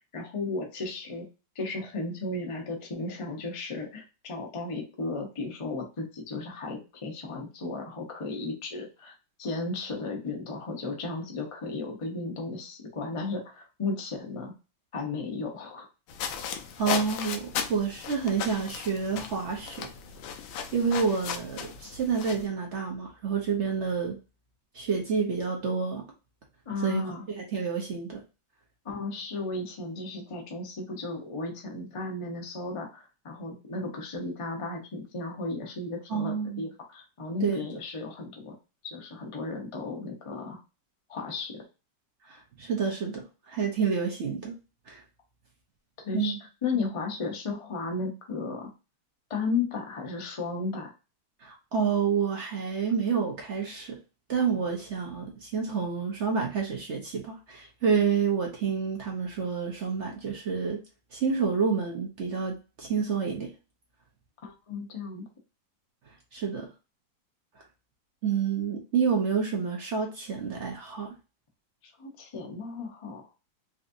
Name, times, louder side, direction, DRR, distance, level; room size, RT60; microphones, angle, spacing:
voice 1, 0.1-1.2 1.5-9.1 9.4-14.5 14.9-15.9 26.7-27.2 28.8-38.5 38.8-40.6 41.1-41.6 46.0-46.3 46.6-48.7 49.3-50.9 64.4-65.3 71.8-73.3, left 3 dB, 55° left, 0.3 m, -34 dB
sound 1, 16.1-22.5, left 7 dB, 85° left, 1.4 m, -36 dB
voice 2, 16.8-19.9 20.7-24.2 24.7-26.0 26.8-27.0 27.4-28.2 36.1-36.7 37.4-37.7 42.2-44.5 44.9-45.0 46.1-46.4 46.7-46.8 51.4-54.0 54.3-60.8 61.1-63.5 66.1-66.7 68.2-71.1, right 6 dB, 65° right, 0.7 m, -29 dB
4.0 x 2.6 x 2.6 m
omnidirectional pair, 2.1 m